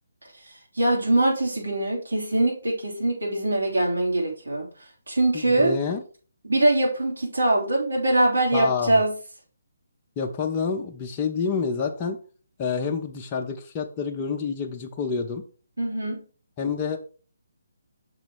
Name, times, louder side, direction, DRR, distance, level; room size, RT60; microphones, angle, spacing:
voice 1, 0.7-4.7 5.1-5.7 6.4-9.1 15.8-16.2, right 2 dB, 75° right, -3 dB, 3.2 m, -23 dB
voice 2, 5.3-6.0 8.5-9.0 10.2-12.2 12.6-15.4 16.6-17.0, left 5 dB, 25° left, 1 dB, 0.7 m, -28 dB
6.2 x 4.0 x 4.6 m, 0.38 s
figure-of-eight pair, 140°, 0 cm